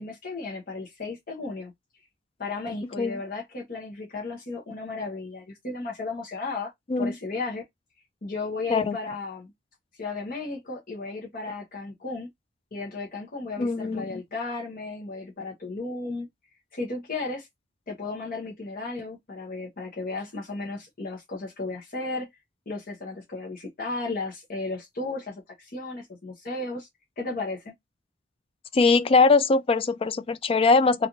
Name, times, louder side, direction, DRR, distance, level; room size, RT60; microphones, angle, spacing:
voice 1, 0.0-1.7 2.4-6.7 7.0-7.6 8.2-9.5 10.0-12.3 12.7-16.3 16.7-17.5 17.9-22.3 22.7-26.9 27.2-27.7, left 3 dB, 50° left, 1.1 m, -34 dB
voice 2, 2.8-3.2 6.9-7.2 8.7-9.0 13.6-14.2 28.7-31.1, left 4 dB, 30° left, 0.3 m, -21 dB
3.3 x 2.6 x 3.0 m
head